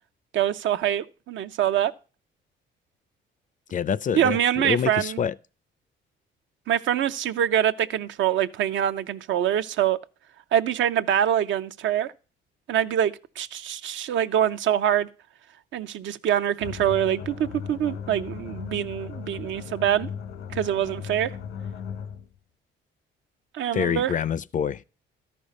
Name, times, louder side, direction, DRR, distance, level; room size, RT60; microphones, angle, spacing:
voice 1, 0.3-1.9 4.1-5.2 6.7-10.0 10.5-12.1 12.7-15.1 15.7-20.1 20.5-21.3 23.5-24.1, right 10 dB, 75° right, 0.6 m, -24 dB
voice 2, 3.7-4.4 4.6-5.3 23.7-24.8, left 7 dB, 40° left, 0.4 m, -26 dB
sound 1, 16.6-22.3, left 7 dB, 90° left, 1.0 m, -37 dB
13.0 x 5.4 x 5.2 m
cardioid pair, 90°, 20 cm